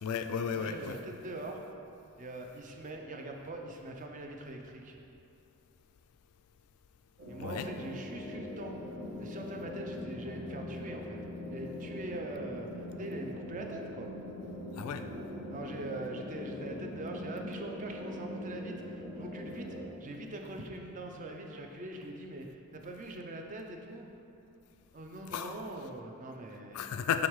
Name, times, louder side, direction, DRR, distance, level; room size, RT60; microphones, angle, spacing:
voice 1, 0.0-1.0 7.4-7.7 14.8-15.0 25.3-25.5 26.7-27.3, left 7 dB, 75° left, 9 dB, 0.3 m, -33 dB
voice 2, 0.5-1.6 2.2-5.0 7.3-11.2 11.5-14.1 15.5-24.1 24.9-26.8, right 1 dB, 35° right, 2 dB, 0.5 m, -43 dB
sound 1, 7.2-19.9, left 1 dB, 70° right, 1.1 m, -42 dB
6.3 x 3.6 x 4.7 m, 2.6 s
head